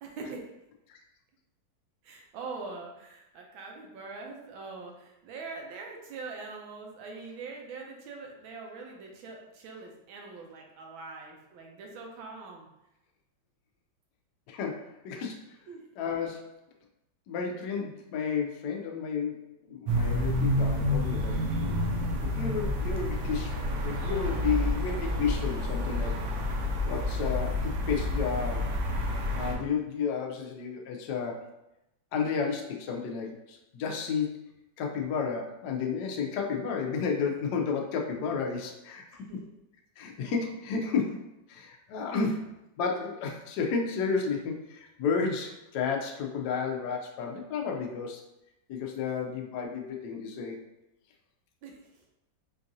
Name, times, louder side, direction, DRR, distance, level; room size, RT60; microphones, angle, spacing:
voice 1, 0.0-0.4 2.0-12.7 15.7-15.8 39.1-39.4 51.6-52.0, right 4 dB, 85° right, 1 dB, 1.5 m, -43 dB
voice 2, 14.5-15.4 16.0-16.5 17.3-21.3 22.3-26.2 26.8-28.7 29.4-31.4 32.1-34.5 34.8-39.0 40.0-41.2 41.5-42.5 42.8-48.2 48.7-50.6, left 5 dB, 70° left, 1 dB, 1.0 m, -32 dB
sound 1, 19.9-29.6, left 1 dB, 70° right, 1.1 m, -29 dB
4.6 x 2.4 x 2.6 m, 0.88 s
omnidirectional pair, 2.1 m